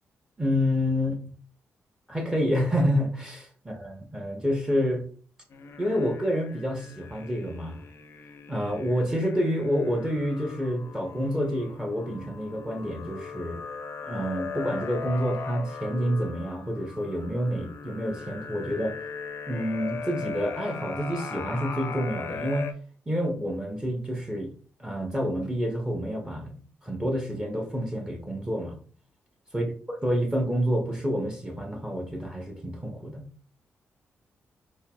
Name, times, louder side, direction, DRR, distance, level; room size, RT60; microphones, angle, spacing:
voice 1, 0.4-1.2 2.1-3.5 3.8-5.0 5.8-7.8 8.5-13.6 14.0-19.0 19.5-22.7 23.1-24.5 24.8-26.6 26.8-28.8 29.5-29.7 30.0-33.3, equal, 15° right, 0.9 m, -28 dB
sound 1, 5.5-22.7, left 5 dB, 60° left, 0.5 m, -39 dB
4.5 x 3.9 x 2.3 m
cardioid pair, 120°, 5 cm